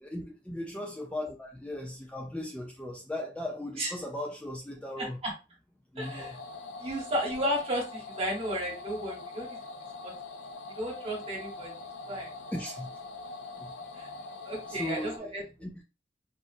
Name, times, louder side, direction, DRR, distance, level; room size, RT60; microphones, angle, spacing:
voice 1, 0.0-5.2 5.9-6.4 12.5-12.9 13.6-13.7 14.7-15.2 15.6-15.8, left 1 dB, 5° left, 0.4 m, -37 dB
voice 2, 5.0-5.3 6.0-6.3 6.8-9.6 10.0-10.1 10.8-11.7 12.1-12.3 13.9-14.1 14.4-15.7, equal, 35° right, 1.3 m, -33 dB
sound 1, 6.0-15.2, left 3 dB, 75° left, 0.5 m, -43 dB
4.0 x 2.4 x 2.4 m
head